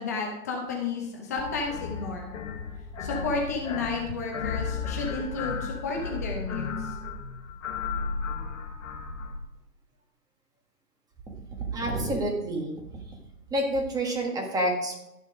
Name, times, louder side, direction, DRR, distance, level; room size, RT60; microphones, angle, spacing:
voice 1, 0.0-2.3 3.0-6.9, left 4 dB, 10° left, 1 dB, 0.6 m, -32 dB
sound 1, 1.4-9.4, left 5 dB, 50° left, 1.6 m, -34 dB
voice 2, 11.3-12.7 13.5-14.9, right 1 dB, 5° right, 1 dB, 1.4 m, -28 dB
12.5 x 6.5 x 5.0 m, 0.90 s
hypercardioid pair, 150°, 50 cm